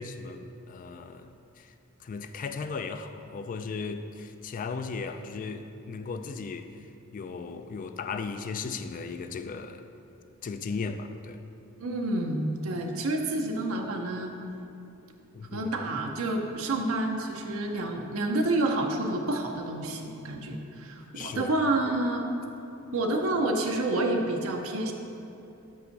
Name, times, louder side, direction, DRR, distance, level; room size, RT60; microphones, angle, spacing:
voice 1, 0.0-1.7 2.0-6.7 7.1-9.8 10.4-11.4 15.3-15.7 21.1-21.5, left 4 dB, 40° left, 9 dB, 0.3 m, -36 dB
voice 2, 11.8-14.3 15.5-22.3 22.9-24.9, right 2 dB, 75° right, 2 dB, 0.6 m, -29 dB
5.4 x 5.4 x 6.4 m, 2.7 s
head